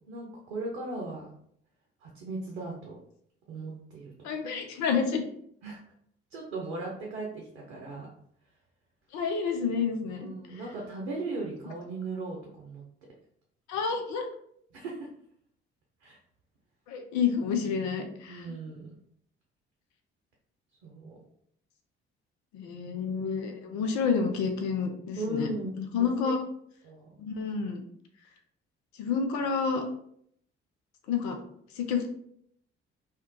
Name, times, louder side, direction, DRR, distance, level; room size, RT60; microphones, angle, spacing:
voice 1, 0.1-1.3 2.0-3.0 3.5-4.3 5.6-5.8 6.3-8.1 10.1-12.8 14.7-15.1 16.0-16.2 18.3-18.9 20.8-21.2 23.7-23.9 25.2-26.3 26.8-27.1, right 2 dB, 80° right, -1 dB, 0.6 m, -37 dB
voice 2, 4.2-5.2 9.1-10.3 13.7-14.3 16.9-18.5 22.5-25.5 25.8-26.4 27.2-27.8 29.0-29.8 31.1-31.4 31.7-32.1, left 6 dB, 60° left, 4 dB, 0.6 m, -29 dB
3.1 x 2.9 x 3.1 m, 0.68 s
figure-of-eight pair, 45°, 32 cm